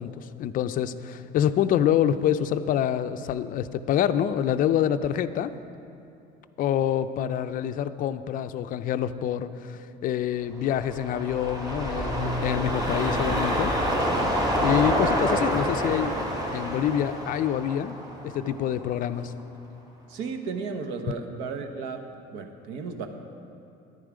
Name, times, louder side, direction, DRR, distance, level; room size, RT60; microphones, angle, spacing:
voice 1, 0.0-5.5 6.6-13.7 14.6-16.1 16.5-18.0 18.2-19.3, left 10 dB, 50° left, 11 dB, 0.4 m, -26 dB
sound 1, 10.6-19.0 19.4-19.5, equal, 20° right, 1.9 m, -27 dB
voice 2, 20.1-22.0 22.3-23.1, right 5 dB, 80° right, 6 dB, 1.0 m, -34 dB
10.5 x 10.0 x 5.0 m, 2.7 s
cardioid pair, 135°, 19 cm